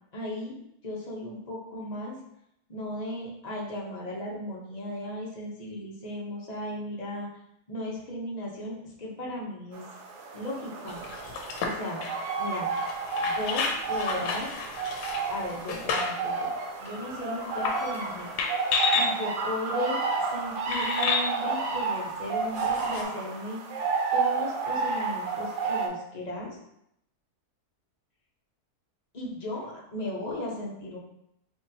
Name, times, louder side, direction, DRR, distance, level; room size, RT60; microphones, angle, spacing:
voice 1, 0.1-0.5 0.8-2.2 2.7-7.3 7.7-9.8 10.3-11.1 11.6-12.0 12.4-12.7 13.2-14.5 15.3-16.5 16.8-18.3 18.9-23.6 24.1-26.6 29.1-31.0, left 1 dB, 40° left, -4 dB, 0.6 m, -36 dB
sound 1, 9.7-25.9, right 4 dB, 85° right, 1.2 m, -31 dB
sound 2, 10.9-16.3 16.9-17.0 17.5-18.0 18.4-19.1 20.0-20.1 20.7-21.3 22.6-23.0, left 4 dB, 85° left, 1.2 m, -31 dB
4.1 x 3.0 x 2.7 m, 0.77 s
omnidirectional pair, 1.7 m